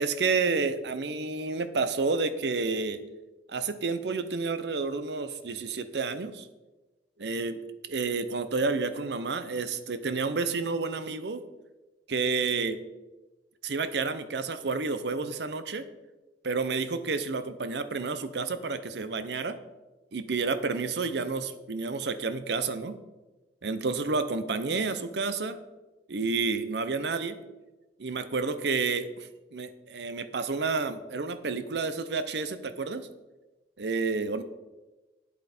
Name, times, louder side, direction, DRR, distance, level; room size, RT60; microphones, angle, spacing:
voice 1, 0.0-3.0 3.5-6.5 7.2-11.4 12.1-12.8 13.6-15.9 16.4-19.6 20.1-23.0 23.6-25.6 26.1-27.4 28.0-33.1 33.8-34.4, right 4 dB, 70° right, 11 dB, 0.7 m, -30 dB
8.7 x 8.2 x 4.3 m, 1.1 s
head